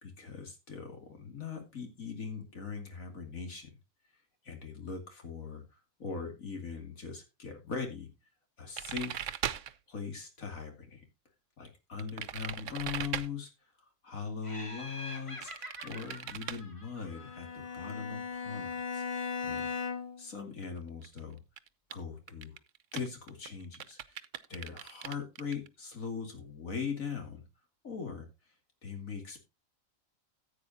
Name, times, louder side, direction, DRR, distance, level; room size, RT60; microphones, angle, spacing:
voice 1, 0.0-3.7 4.4-5.6 6.0-8.1 8.6-9.3 9.9-11.0 11.6-13.5 14.0-19.7 20.2-21.4 21.9-22.5 22.9-24.2 24.5-27.4 27.8-28.3 28.8-29.4, left 5 dB, 80° left, 4 dB, 2.9 m, -40 dB
sound 1, 8.8-9.8 12.0-13.3 15.4-16.6 20.6-20.7 21.0-21.2 21.6-21.9 22.3-25.7, right 10 dB, 70° right, 1.0 m, -38 dB
Laughter, 14.4-17.8, left 1 dB, 20° left, 2.2 m, -46 dB
Bowed string instrument, 17.2-20.3, left 5 dB, 50° left, 0.4 m, -37 dB
14.5 x 8.6 x 2.7 m, 0.25 s
omnidirectional pair, 1.4 m